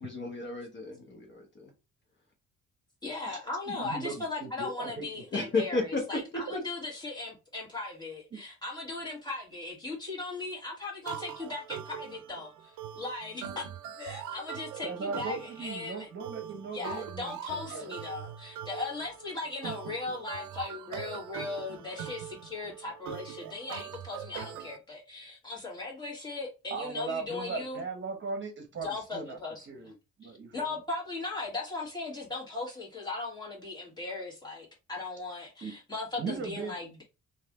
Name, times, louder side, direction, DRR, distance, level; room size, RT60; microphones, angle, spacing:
voice 1, 0.0-1.7 5.3-6.0 6.5-6.6, left 3 dB, 40° left, 1.1 m, -32 dB
voice 2, 3.0-13.7 14.0-16.1 16.7-27.8 28.8-29.9 30.2-37.0, left 3 dB, 15° left, 1.9 m, -38 dB
voice 3, 3.7-5.1 5.4-5.5 8.3-8.4 14.8-17.9 26.7-29.4 29.7-29.9 30.2-30.8 35.6-35.7 36.2-36.7, right 4 dB, 40° right, 1.0 m, -38 dB
sound 1, 11.0-24.8, right 10 dB, 90° right, 0.5 m, -42 dB
3.2 x 2.6 x 3.6 m
cardioid pair, 100°, 30 cm